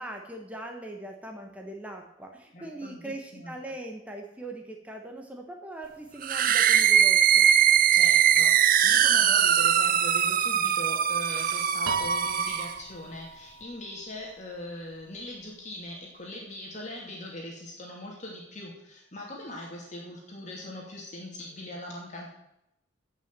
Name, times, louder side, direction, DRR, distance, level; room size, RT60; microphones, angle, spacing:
voice 1, 0.0-7.5, right 1 dB, 5° right, 2 dB, 1.3 m, -41 dB
voice 2, 2.5-3.6 7.9-22.3, left 1 dB, 35° left, -1 dB, 2.5 m, -41 dB
sound 1, 6.2-12.8, right 9 dB, 45° right, 0.6 m, -21 dB
Piano, 11.9-14.3, right 4 dB, 85° right, 1.5 m, -36 dB
15.5 x 6.1 x 7.5 m, 0.84 s
head